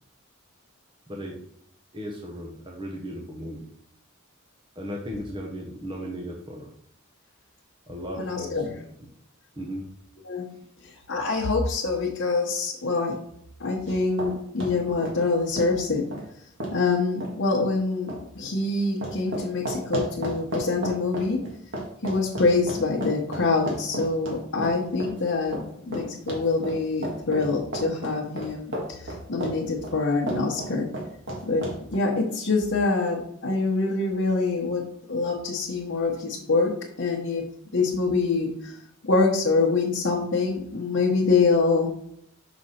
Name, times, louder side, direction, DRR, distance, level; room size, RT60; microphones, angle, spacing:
voice 1, 1.1-1.4 1.9-3.7 4.8-6.7 7.9-8.6 9.0-9.1 9.6-9.9, equal, 20° right, -1 dB, 0.8 m, -36 dB
voice 2, 8.2-8.7 10.2-10.5 10.8-13.2 13.6-16.1 16.7-21.4 22.0-30.9 31.5-36.7 37.0-37.5 37.7-38.8 39.1-41.9, left 3 dB, 60° left, -4 dB, 1.0 m, -25 dB
sound 1, 13.9-14.3 14.6-14.7 15.0-15.2 15.6-15.7 16.1-16.2 16.6-16.7 17.2-17.3 18.1-18.2 19.0-25.2 25.5-29.6 29.8-29.9 30.3-32.0, right 1 dB, 60° right, 1.9 m, -32 dB
6.0 x 5.1 x 4.3 m, 0.71 s
head